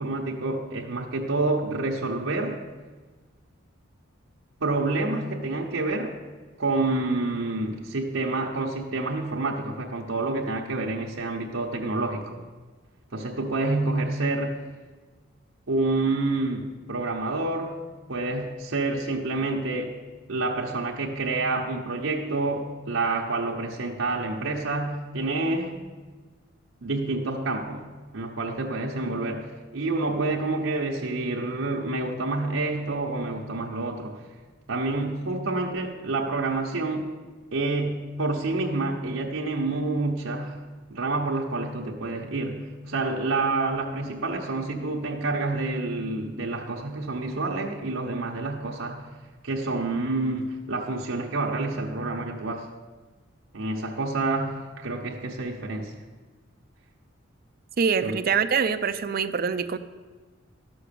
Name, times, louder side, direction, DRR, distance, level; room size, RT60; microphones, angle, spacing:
voice 1, 0.0-2.6 4.6-6.2 6.6-12.4 13.1-14.6 15.7-17.8 18.1-20.0 20.3-25.8 26.8-27.8 28.1-34.2 34.7-37.1 37.5-40.6 40.9-49.0 49.4-52.7 53.5-55.9 58.0-58.2, right 2 dB, 75° right, -1 dB, 1.0 m, -28 dB
voice 2, 57.8-59.8, right 6 dB, 45° right, 11 dB, 0.5 m, -24 dB
12.5 x 6.2 x 6.8 m, 1.3 s
head